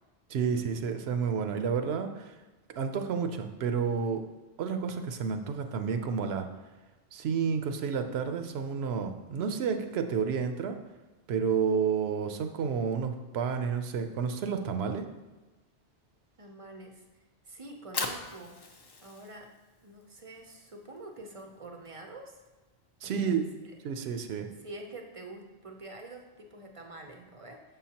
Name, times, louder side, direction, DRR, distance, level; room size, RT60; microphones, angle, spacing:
voice 1, 0.3-2.4 2.8-4.2 4.6-6.5 7.1-10.8 11.3-15.1 23.0-23.5 23.8-24.5, right 6 dB, 70° right, 7 dB, 0.8 m, -30 dB
voice 2, 16.4-17.0 17.4-18.6 19.0-19.5 19.8-22.4 23.0-23.8 24.6-27.6, right 2 dB, 40° right, 2 dB, 0.5 m, -46 dB
Fire, 17.6-23.9, left 3 dB, 40° left, 0.3 m, -42 dB
6.8 x 5.6 x 2.8 m, 1.2 s
omnidirectional pair, 1.1 m